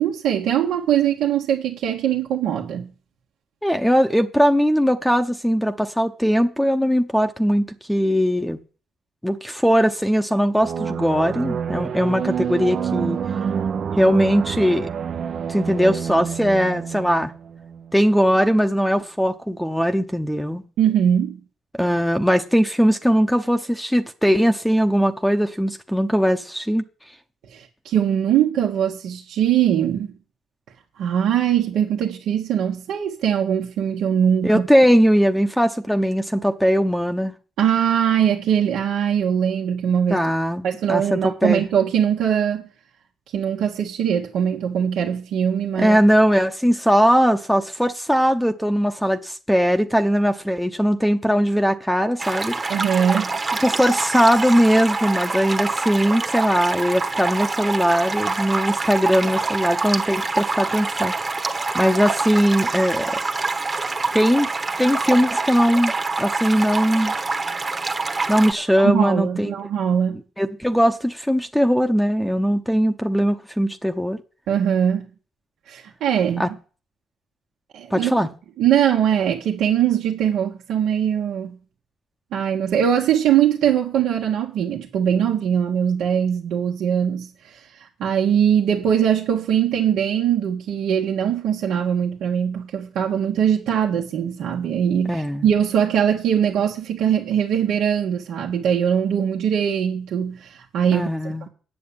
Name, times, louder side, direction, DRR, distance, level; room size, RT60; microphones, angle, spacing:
voice 1, 0.0-2.9 20.8-21.4 27.5-30.1 31.0-34.7 37.6-40.3 40.6-42.6 43.3-46.0 52.7-53.4 68.8-70.2 74.5-75.0 75.7-76.5 77.7-78.2 78.6-81.6 82.3-101.1, right 9 dB, 80° right, 1.4 m, -21 dB
voice 2, 3.6-8.6 9.2-13.2 14.0-14.9 15.5-17.3 17.9-20.6 21.8-26.8 34.4-37.3 40.1-40.6 40.9-41.6 45.8-52.6 53.6-61.5 61.7-63.2 64.1-64.5 64.8-65.9 66.2-67.1 68.3-69.5 70.4-74.2 76.4-76.5 77.9-78.3 95.1-95.4 100.9-101.5, equal, ahead, 0.8 m, -20 dB
sound 1, 10.6-18.0, right 7 dB, 55° right, 0.6 m, -28 dB
sound 2, 52.2-68.5, right 3 dB, 25° right, 1.2 m, -25 dB
8.6 x 6.9 x 8.7 m
cardioid pair, 90°, 0 cm